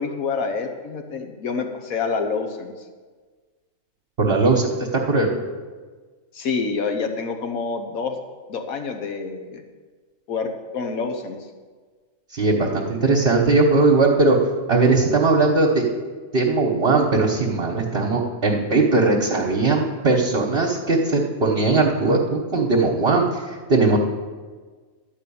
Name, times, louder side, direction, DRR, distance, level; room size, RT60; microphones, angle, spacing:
voice 1, 0.0-2.7 6.3-8.2 8.5-9.6 10.3-11.4, left 4 dB, 85° left, 5 dB, 1.5 m, -27 dB
voice 2, 4.2-5.3 12.3-14.4 14.7-15.8 16.3-24.0, right 3 dB, 50° right, -2 dB, 1.3 m, -19 dB
12.0 x 5.4 x 8.5 m, 1.4 s
omnidirectional pair, 1.4 m